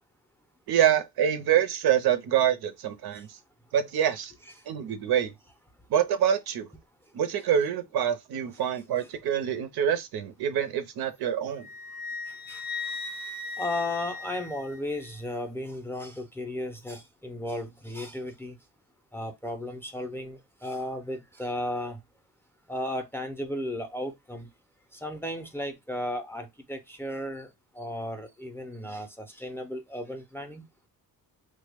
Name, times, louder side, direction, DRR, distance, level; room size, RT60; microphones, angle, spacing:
voice 1, 0.7-3.3 3.7-4.3 4.7-5.3 5.9-6.7 7.1-11.7, right 9 dB, 85° right, 0.6 m, -26 dB
Wind instrument woodwind instrument, 11.6-15.1, left 3 dB, 75° left, 0.5 m, -37 dB
voice 2, 13.6-18.6 19.1-22.0 22.7-24.5 25.0-27.5 27.8-30.6, left 1 dB, 5° left, 0.4 m, -35 dB
3.1 x 2.1 x 3.4 m
wide cardioid pair, 145°, 37 cm